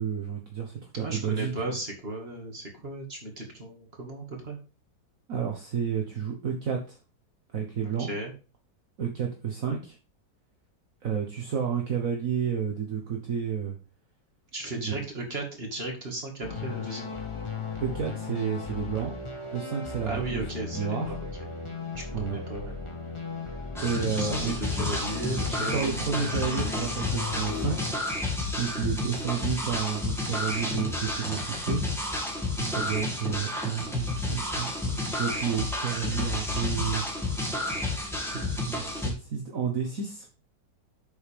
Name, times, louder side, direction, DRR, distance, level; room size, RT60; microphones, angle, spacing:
voice 1, 0.0-1.5 5.3-7.0 7.5-8.1 9.0-9.9 11.0-13.8 17.8-19.1 19.5-21.1 22.1-22.4 23.8-24.6 25.6-27.9 28.6-31.8 32.6-37.6 38.3-40.3, right 7 dB, 50° right, 2 dB, 1.5 m, -31 dB
voice 2, 1.0-4.6 7.8-8.3 14.5-17.1 20.0-21.2 22.3-22.8 24.1-25.8 28.7-29.1, right 2 dB, 35° right, 0 dB, 2.3 m, -35 dB
sound 1, 16.4-27.9, left 5 dB, 15° left, 1.5 m, -36 dB
sound 2, 23.8-39.1, left 2 dB, ahead, 2.0 m, -31 dB
8.0 x 6.7 x 3.6 m, 0.34 s
omnidirectional pair, 1.9 m